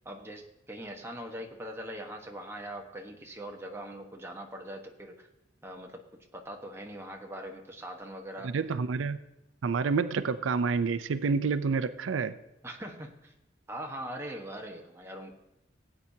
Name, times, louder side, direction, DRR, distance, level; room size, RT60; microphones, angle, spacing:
voice 1, 0.0-5.3 5.6-6.0 6.3-8.5 12.6-13.3 13.7-15.3, right 1 dB, 15° right, 1 dB, 1.1 m, -41 dB
voice 2, 8.4-9.2 9.6-12.3, right 5 dB, 90° right, 13 dB, 0.4 m, -28 dB
17.5 x 8.7 x 2.7 m, 0.91 s
head